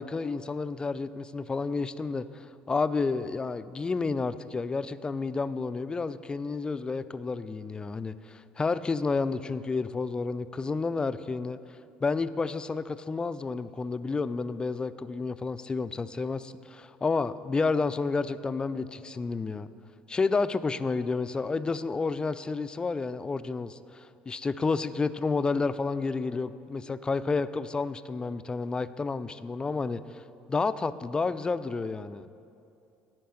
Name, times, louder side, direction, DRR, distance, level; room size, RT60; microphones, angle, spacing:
voice 1, 0.0-11.6 12.0-19.7 20.1-30.2 30.5-32.3, left 4 dB, 20° left, 14 dB, 0.3 m, -30 dB
10.0 x 4.6 x 7.7 m, 2.6 s
supercardioid pair, 85°, 4 cm